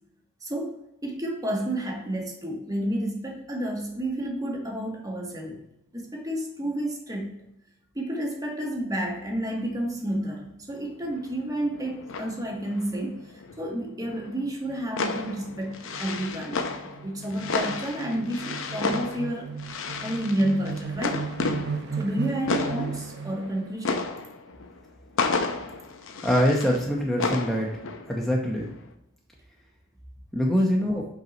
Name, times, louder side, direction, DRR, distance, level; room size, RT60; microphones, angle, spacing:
voice 1, 0.4-5.6 5.9-7.4 7.9-19.5 20.0-21.3 21.9-24.1, right 1 dB, 15° right, 0 dB, 1.4 m, -30 dB
sound 1, 10.7-10.8 11.0-13.7 14.0-28.3 28.6-28.9, left 4 dB, 65° left, 0.7 m, -33 dB
sound 2, 13.2-13.3 13.6-13.7 14.0-23.6, right 5 dB, 55° right, 0.5 m, -37 dB
voice 2, 26.2-27.7 28.1-28.6 30.3-31.0, equal, ahead, -2 dB, 0.8 m, -23 dB
5.4 x 4.5 x 5.2 m, 0.87 s
head